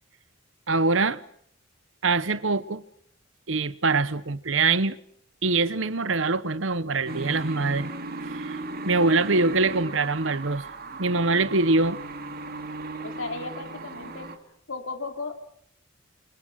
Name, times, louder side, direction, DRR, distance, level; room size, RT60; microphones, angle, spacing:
voice 1, 0.7-1.2 2.0-2.8 3.5-5.0 5.4-7.9 8.3-8.6 8.8-10.6 11.0-12.0, right 3 dB, 75° right, 1.2 m, -23 dB
sound 1, 7.0-14.4, right 2 dB, 50° right, 2.7 m, -36 dB
voice 2, 13.0-14.3 14.7-15.3, left 3 dB, 85° left, 3.8 m, -35 dB
29.0 x 26.5 x 6.5 m
head